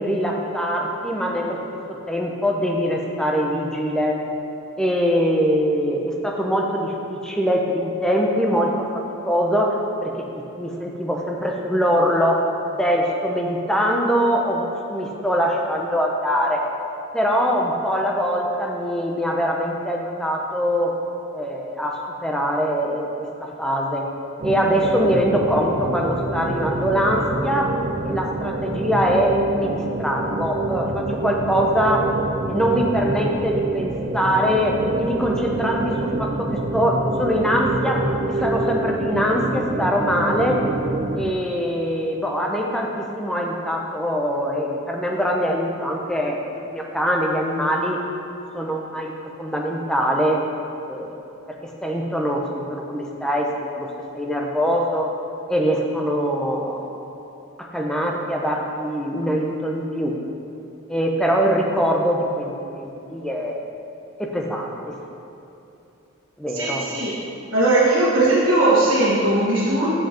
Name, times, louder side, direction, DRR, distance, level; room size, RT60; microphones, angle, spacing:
voice 1, 0.0-1.6 1.9-4.2 4.8-9.7 10.0-12.4 12.8-16.6 17.1-20.9 21.3-24.0 24.4-27.7 28.0-32.0 32.5-40.6 41.1-46.4 46.7-48.0 48.5-49.1 49.4-50.4 50.9-51.1 51.8-53.9 54.1-55.1 55.5-56.9 57.6-60.1 60.9-63.6 64.2-64.9 66.4-66.8, equal, 5° left, -1 dB, 0.7 m, -23 dB
sound 1, 24.4-41.3, right 2 dB, 30° right, 0.4 m, -26 dB
voice 2, 66.5-67.1 67.5-69.9, right 2 dB, 70° right, -8 dB, 1.4 m, -18 dB
8.1 x 7.4 x 4.4 m, 2.9 s
head